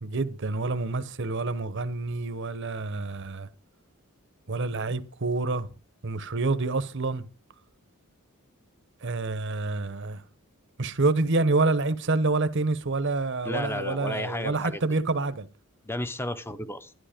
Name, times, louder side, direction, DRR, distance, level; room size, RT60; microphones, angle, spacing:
voice 1, 0.0-3.5 4.5-5.7 6.0-7.2 9.0-10.2 10.8-15.5, right 3 dB, 55° right, 1.0 m, -27 dB
voice 2, 13.4-14.8 15.8-16.9, left 1 dB, 10° left, 0.8 m, -33 dB
11.5 x 11.0 x 5.1 m
head